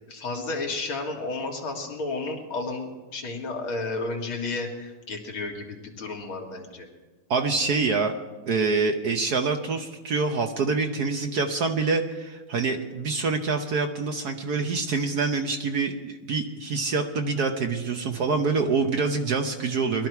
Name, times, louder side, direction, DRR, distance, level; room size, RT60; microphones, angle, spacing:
voice 1, 0.1-6.9, left 3 dB, 70° left, 1 dB, 2.7 m, -32 dB
voice 2, 7.3-8.2 8.5-20.1, right 4 dB, 60° right, 5 dB, 1.2 m, -26 dB
21.0 x 12.5 x 4.6 m, 1.2 s
omnidirectional pair, 2.3 m